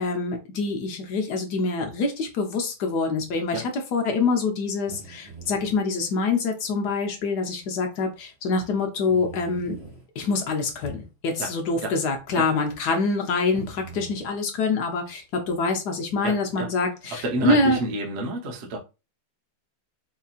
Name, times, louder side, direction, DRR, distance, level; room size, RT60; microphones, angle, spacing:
voice 1, 0.0-3.6 3.9-9.8 10.1-17.8, left 3 dB, 60° left, 1.3 m, -25 dB
sound 1, 4.9-5.7 6.8-6.9 7.6-7.7 9.1-10.0 11.0-11.1 12.2-12.3 13.5-14.3 17.3-17.8, right 4 dB, 10° right, 1.3 m, -42 dB
voice 2, 16.2-16.7 17.1-18.8, right 2 dB, 50° right, 0.9 m, -29 dB
4.6 x 2.8 x 2.4 m
omnidirectional pair, 2.2 m